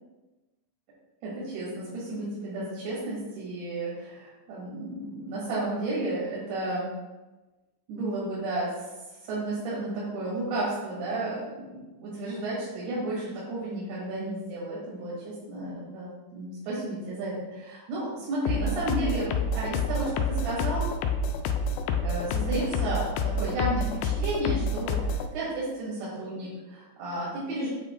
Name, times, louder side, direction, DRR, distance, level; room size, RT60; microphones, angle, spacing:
voice 1, 1.2-6.9 7.9-8.9 9.3-20.9 22.0-23.1 23.4-27.7, right 2 dB, 90° right, -7 dB, 3.6 m, -32 dB
sound 1, 18.5-25.3, left 3 dB, 80° left, 2.2 m, -28 dB
7.9 x 4.1 x 2.9 m, 1.1 s
omnidirectional pair, 4.5 m